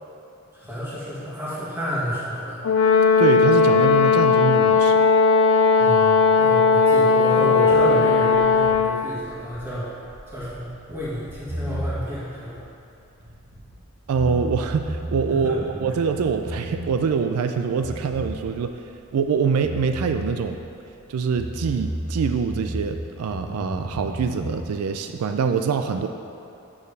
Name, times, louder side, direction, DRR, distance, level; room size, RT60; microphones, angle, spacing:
voice 1, 0.5-2.6 5.8-9.9 10.3-12.6 15.3-15.6, equal, 10° right, -9 dB, 1.6 m, -30 dB
Brass instrument, 2.6-9.0, left 5 dB, 65° left, 0.4 m, -17 dB
voice 2, 3.2-5.1 14.1-20.6 21.1-26.1, right 5 dB, 85° right, 6 dB, 0.3 m, -24 dB
sound 1, 7.7-13.8 14.1-17.2 17.4-19.3 19.6-23.0 23.3-24.5, equal, 55° right, 1.1 m, -33 dB
7.1 x 6.6 x 3.3 m, 2.7 s
head